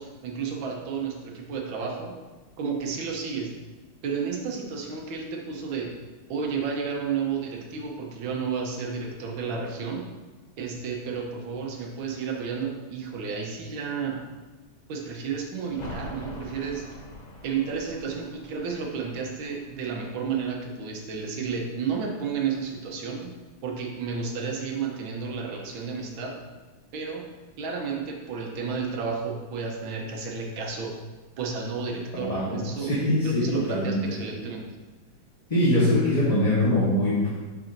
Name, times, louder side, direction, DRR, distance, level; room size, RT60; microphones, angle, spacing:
voice 1, 0.0-2.2 2.6-3.5 4.0-5.9 6.3-10.1 10.6-14.2 14.9-16.8 17.4-23.3 23.6-26.3 26.9-27.3 27.6-30.9 31.4-32.9 33.2-34.6, right 5 dB, 80° right, 1 dB, 1.7 m, -32 dB
sound 1, 15.7-21.2 21.5-21.6, left 1 dB, 45° left, 0.5 m, -44 dB
voice 2, 32.2-34.2 35.5-37.3, left 1 dB, 25° left, -9 dB, 1.0 m, -23 dB
7.3 x 6.2 x 2.6 m, 1.2 s
omnidirectional pair, 2.1 m